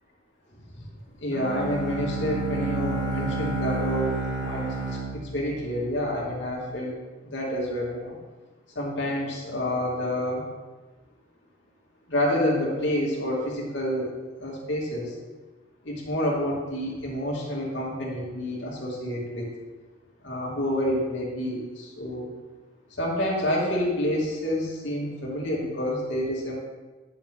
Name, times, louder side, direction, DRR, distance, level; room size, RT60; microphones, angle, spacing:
voice 1, 0.7-7.0 7.2-8.2 8.7-10.5 12.1-15.1 15.8-19.5 20.2-22.3 23.0-26.5, left 1 dB, 75° left, -4 dB, 2.7 m, -28 dB
Bowed string instrument, 1.3-6.3, right 3 dB, 30° right, 3.0 m, -30 dB
10.0 x 7.1 x 3.8 m, 1.2 s
head